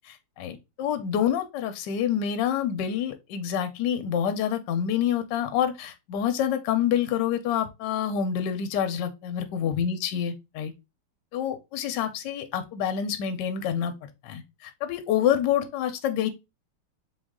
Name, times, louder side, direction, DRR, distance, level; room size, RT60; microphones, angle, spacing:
voice 1, 0.0-10.7 11.3-13.9 14.2-16.3, left 9 dB, 70° left, 1.1 m, -27 dB
3.7 x 3.1 x 3.5 m
omnidirectional pair, 2.4 m